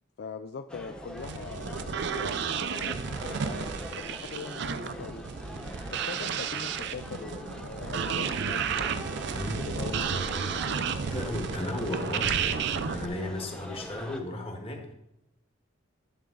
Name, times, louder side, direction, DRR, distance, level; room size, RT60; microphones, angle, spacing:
voice 1, 0.2-5.3 5.9-9.1 9.6-11.1, left 5 dB, 55° left, 8 dB, 0.4 m, -42 dB
sound 1, 0.7-14.2, equal, 5° left, 0.9 m, -42 dB
sound 2, 1.2-13.1, right 6 dB, 60° right, 0.5 m, -32 dB
voice 2, 9.3-9.6 11.0-14.9, left 1 dB, 30° left, 2 dB, 1.5 m, -35 dB
10.5 x 6.8 x 3.9 m, 0.87 s
head